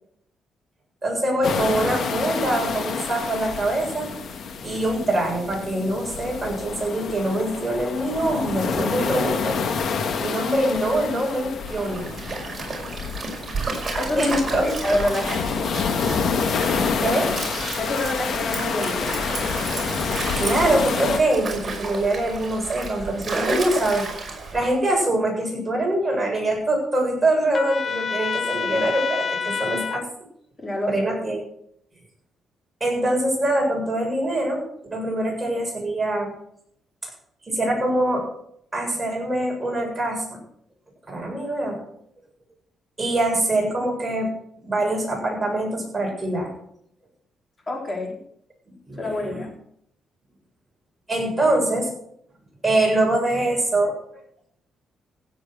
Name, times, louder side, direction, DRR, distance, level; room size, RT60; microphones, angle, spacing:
voice 1, 1.0-4.1 4.6-9.5 10.2-12.1 14.2-14.7 17.0-17.3 20.0-30.0 30.9-31.4 32.8-34.7 34.9-36.3 37.0-37.1 37.4-38.3 38.7-40.4 41.1-41.8 43.0-44.3 44.6-46.5 48.9-49.5 51.1-51.9 52.6-53.9, right 1 dB, 15° right, -1 dB, 7.6 m, -24 dB
sound 1, 1.4-21.2, left 5 dB, 60° left, 1.9 m, -28 dB
Stream, 11.7-24.7, right 3 dB, 35° right, 5.5 m, -32 dB
voice 2, 14.0-15.6 17.8-19.3 30.6-31.2 47.7-48.2 49.0-49.5, left 1 dB, 25° left, 2 dB, 3.8 m, -27 dB
Trumpet, 27.5-30.0, left 6 dB, 40° left, 1.1 m, -27 dB
16.0 x 8.5 x 6.3 m, 0.69 s
cardioid pair, 105°, 0 cm